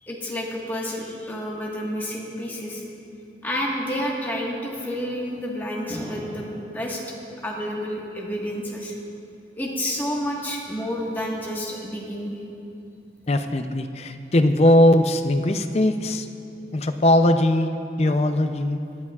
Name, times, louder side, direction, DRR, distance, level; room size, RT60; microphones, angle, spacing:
voice 1, 0.0-2.8 3.4-7.0 7.4-8.9 9.6-12.4, equal, 10° left, -3 dB, 1.4 m, -29 dB
voice 2, 13.3-16.3 16.7-17.7 18.0-18.8, left 1 dB, 35° left, 8 dB, 0.5 m, -19 dB
19.0 x 12.0 x 2.4 m, 2.7 s
head